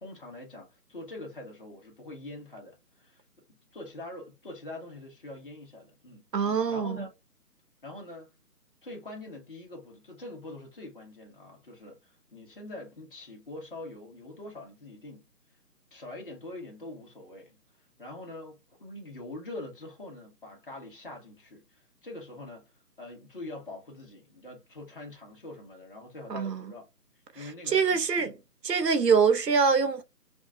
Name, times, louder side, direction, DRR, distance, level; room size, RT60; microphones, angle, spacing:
voice 1, 0.0-3.2 3.7-7.1 7.8-8.3 8.8-15.2 15.9-17.6 18.0-22.7 23.0-26.8 27.3-28.3, left 2 dB, 35° left, 1.2 m, -44 dB
voice 2, 6.3-7.0 26.3-26.7 27.7-28.3 28.6-30.0, right 5 dB, 80° right, 0.9 m, -24 dB
5.1 x 2.5 x 2.2 m
figure-of-eight pair, 165°, 48 cm